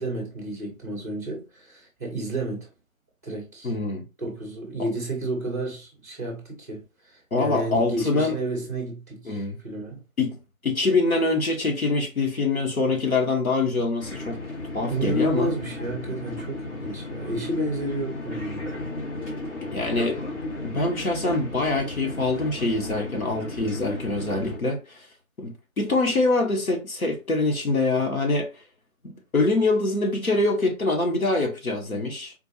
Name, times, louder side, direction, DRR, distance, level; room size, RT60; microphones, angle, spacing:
voice 1, 0.0-2.7 3.2-3.7 4.2-6.8 7.1-10.0 14.9-18.7, right 1 dB, 10° right, 0.8 m, -31 dB
voice 2, 3.6-4.0 7.3-8.4 9.2-9.6 10.2-10.4 10.6-14.4 14.7-15.5 19.7-20.2 20.6-25.1 25.4-28.5 29.0-32.3, left 3 dB, 80° left, 1.2 m, -24 dB
sound 1, 14.0-24.6, left 2 dB, 55° left, 1.6 m, -35 dB
4.3 x 2.3 x 2.9 m
figure-of-eight pair, 155°, 42 cm